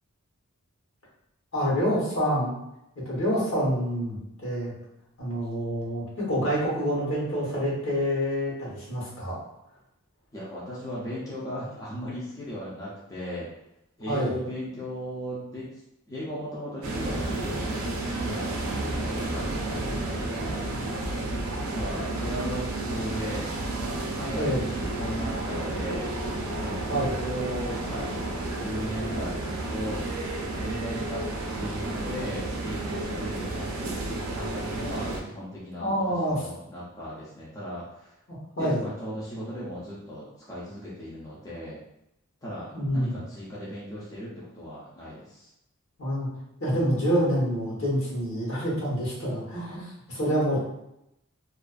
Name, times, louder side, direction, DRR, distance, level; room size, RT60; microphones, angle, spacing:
voice 1, 1.5-2.5 2.9-4.7 5.2-9.4 14.1-14.3 24.3-24.6 26.9-27.2 35.8-36.4 38.3-38.8 42.7-43.1 46.0-46.3 46.6-50.6, equal, 65° left, -5 dB, 1.1 m, -27 dB
voice 2, 10.3-13.5 14.0-15.8 16.1-20.8 21.5-23.5 23.8-31.3 31.6-34.0 34.3-38.1 38.5-41.8 42.4-45.5, equal, 15° left, -8 dB, 0.4 m, -37 dB
sound 1, 16.8-35.2, right 2 dB, 70° right, 0.4 m, -31 dB
2.4 x 2.3 x 2.3 m, 0.84 s
head